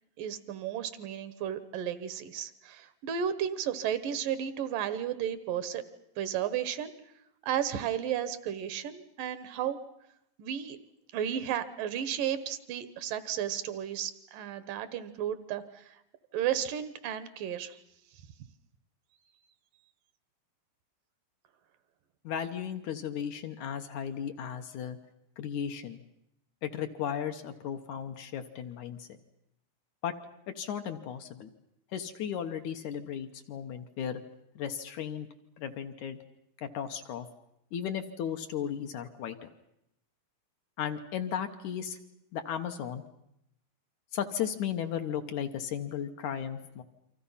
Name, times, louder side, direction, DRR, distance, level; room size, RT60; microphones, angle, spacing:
voice 1, 0.2-5.8 6.2-6.9 7.4-9.8 10.4-10.8 11.1-16.0 16.3-17.8, right 9 dB, 75° right, 13 dB, 2.7 m, -33 dB
voice 2, 22.2-25.0 25.4-26.0 26.6-29.2 30.0-30.1 30.6-31.5 31.9-34.2 34.6-35.3 35.6-36.2 36.6-37.3 37.7-39.5 40.8-42.0 42.3-43.0 44.1-46.8, left 8 dB, 65° left, 6 dB, 2.3 m, -35 dB
29.0 x 24.5 x 5.7 m, 0.80 s
omnidirectional pair, 4.0 m